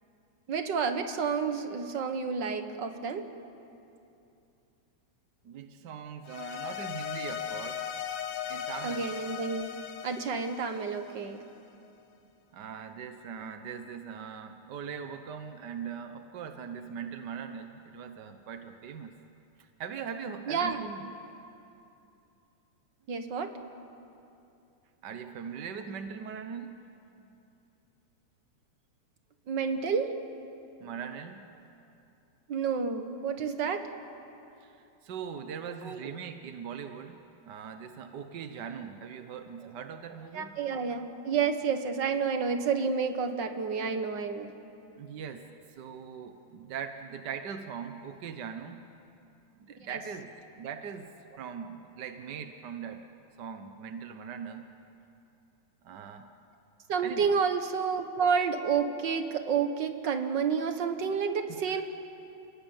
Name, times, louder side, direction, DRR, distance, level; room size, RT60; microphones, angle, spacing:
voice 1, 0.5-3.2 8.8-9.7 10.0-11.4 20.5-20.8 23.1-23.5 29.5-30.1 32.5-33.9 35.8-36.2 40.3-44.5 49.8-50.0 56.9-61.8, right 6 dB, 45° right, 7 dB, 1.7 m, -30 dB
voice 2, 5.4-7.9 8.5-9.1 12.5-19.1 19.6-21.1 25.0-26.9 30.8-31.4 34.6-40.6 45.0-48.8 49.5-51.1 51.4-53.0 53.4-54.7 55.8-56.3 57.0-57.3 61.5-61.8, right 7 dB, 65° right, 7 dB, 1.0 m, -41 dB
sound 1, 6.2-11.6, left 9 dB, 70° left, 2.4 m, -38 dB
29.5 x 20.5 x 9.0 m, 2.7 s
omnidirectional pair, 3.3 m